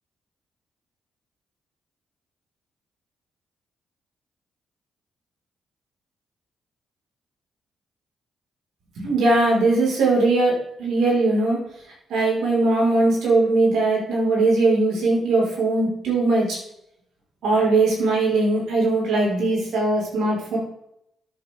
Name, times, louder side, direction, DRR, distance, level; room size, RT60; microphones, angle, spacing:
voice 1, 9.0-10.5 10.8-11.6 12.1-16.6 17.4-20.6, right 2 dB, 70° right, -2 dB, 4.8 m, -20 dB
13.5 x 8.2 x 3.6 m, 0.79 s
hypercardioid pair, 40°, 0 cm